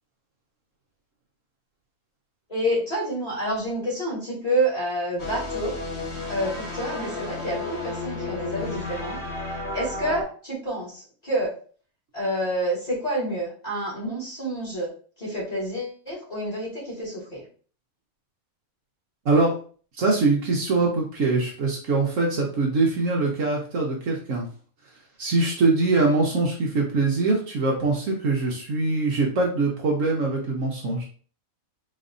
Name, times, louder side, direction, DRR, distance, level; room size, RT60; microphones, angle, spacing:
voice 1, 2.5-5.7 6.3-11.5 12.1-14.9 15.2-17.4, right 1 dB, 25° left, -8 dB, 2.2 m, -28 dB
sound 1, 5.2-10.2, left 2 dB, 40° left, 1.7 m, -32 dB
voice 2, 19.2-19.5 20.0-24.5 25.2-31.0, right 3 dB, 60° right, -1 dB, 1.2 m, -23 dB
4.2 x 3.1 x 2.6 m, 0.42 s
omnidirectional pair, 1.5 m